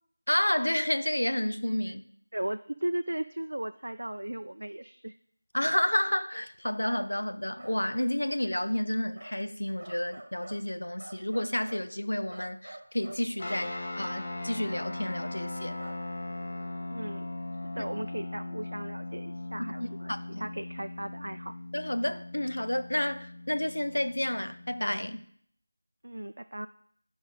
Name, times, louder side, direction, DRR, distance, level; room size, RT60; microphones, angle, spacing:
voice 1, 0.3-2.1 5.5-15.8 19.8-20.5 21.7-25.2, left 1 dB, 80° left, 0.7 m, -30 dB
voice 2, 2.3-5.2 16.9-17.3 17.6-20.1 20.4-21.5 26.0-26.7, right 1 dB, 70° right, 0.4 m, -36 dB
sound 1, 6.9-7.1 7.6-7.8 9.1-9.4 9.8-10.6 11.0-11.9 12.3-13.2 15.8-16.0, right 1 dB, 45° right, 1.4 m, -46 dB
sound 2, 13.4-25.2, left 2 dB, 35° left, 1.1 m, -39 dB
10.5 x 5.2 x 3.9 m
figure-of-eight pair, 170°, 0 cm